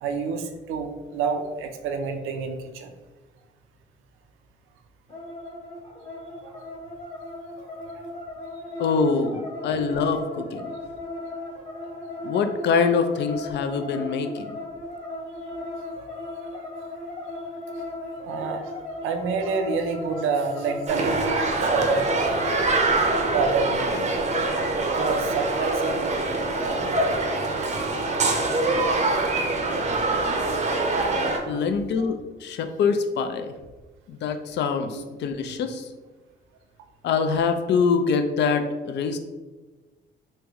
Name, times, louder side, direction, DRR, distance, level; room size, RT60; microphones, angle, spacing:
voice 1, 0.0-2.9 6.4-6.6 11.9-12.0 16.0-16.5 17.8-17.9 18.2-18.7 19.0-22.5 23.3-24.2 24.5-26.2 26.6-27.0 28.3-28.6 31.1-31.7 32.0-32.1 34.9-35.0, right 5 dB, 90° right, 6 dB, 0.4 m, -29 dB
sound 1, 5.1-23.7, left 2 dB, 30° left, 1.0 m, -36 dB
voice 2, 8.8-10.7 12.2-14.6 31.5-33.5 34.1-35.9 37.0-39.2, left 5 dB, 60° left, 7 dB, 0.4 m, -24 dB
sound 2, 20.9-31.4, right 2 dB, 35° right, 0.6 m, -24 dB
3.2 x 2.1 x 3.5 m, 1.2 s
cardioid pair, 90°, 20 cm